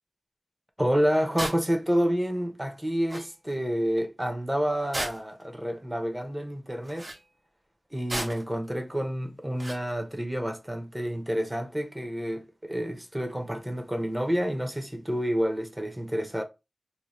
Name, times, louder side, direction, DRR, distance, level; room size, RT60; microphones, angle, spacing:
voice 1, 0.8-7.1 7.9-16.4, equal, 15° right, 0.7 m, -29 dB
sound 1, 1.4-1.6 2.8-2.9 3.1-3.3 4.9-5.4 6.8-7.2 8.1-8.5 9.6-9.8, right 1 dB, 50° right, 1.1 m, -33 dB
2.6 x 2.2 x 3.0 m
cardioid pair, 40°, 0 cm